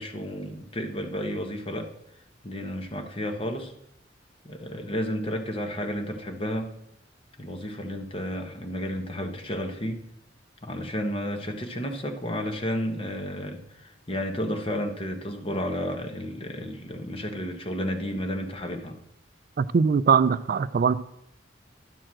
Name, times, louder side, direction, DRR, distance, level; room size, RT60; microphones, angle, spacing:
voice 1, 0.0-1.9 2.4-3.7 4.4-6.7 7.4-10.0 10.6-19.0, equal, 30° left, 5 dB, 1.1 m, -32 dB
voice 2, 19.6-21.0, right 6 dB, 50° right, 14 dB, 0.3 m, -21 dB
11.0 x 4.5 x 7.5 m, 0.77 s
head